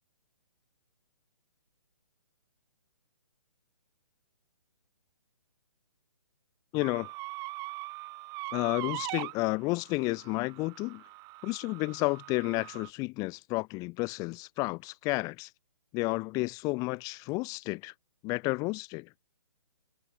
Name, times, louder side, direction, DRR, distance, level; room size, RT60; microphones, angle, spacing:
voice 1, 6.7-7.1 8.5-11.0 11.4-15.5 15.9-17.9 18.2-19.1, left 24 dB, 20° left, 1.3 m, -31 dB
sound 1, 6.8-12.9, right 23 dB, 20° right, 1.9 m, -41 dB
hypercardioid pair, 150°, 17 cm